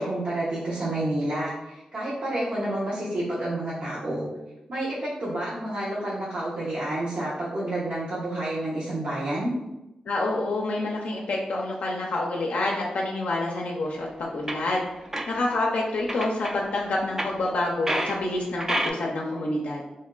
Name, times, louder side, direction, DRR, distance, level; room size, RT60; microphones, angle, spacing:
voice 1, 0.0-4.3 4.7-9.5, right 1 dB, 65° right, -8 dB, 0.9 m, -29 dB
voice 2, 10.1-14.9 15.3-19.8, left 2 dB, 80° left, -2 dB, 0.4 m, -27 dB
sound 1, 14.0-14.1 14.5-15.6 16.0-16.6 17.2-18.2 18.6-18.9, right 1 dB, 20° right, 0.4 m, -29 dB
2.6 x 2.2 x 3.7 m, 0.95 s
cardioid pair, 60°, 2 cm